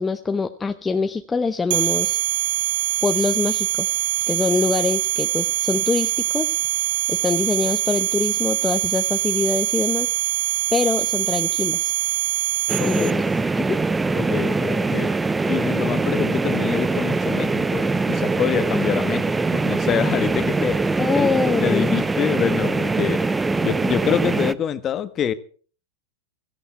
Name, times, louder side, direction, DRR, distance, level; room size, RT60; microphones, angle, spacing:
voice 1, 0.0-2.2 3.0-4.0 4.3-6.6 7.1-10.1 10.7-11.9 12.9-13.1 13.6-13.8 21.0-22.0, left 4 dB, 15° left, 0.9 m, -24 dB
sound 1, 1.7-13.1, right 14 dB, 65° right, 0.7 m, -23 dB
sound 2, 12.7-24.5, right 3 dB, 10° right, 0.7 m, -22 dB
voice 2, 12.8-13.2 14.1-15.1 15.5-23.2 23.6-25.3, left 9 dB, 35° left, 1.4 m, -26 dB
17.0 x 13.5 x 4.5 m
hypercardioid pair, 100°, 0 cm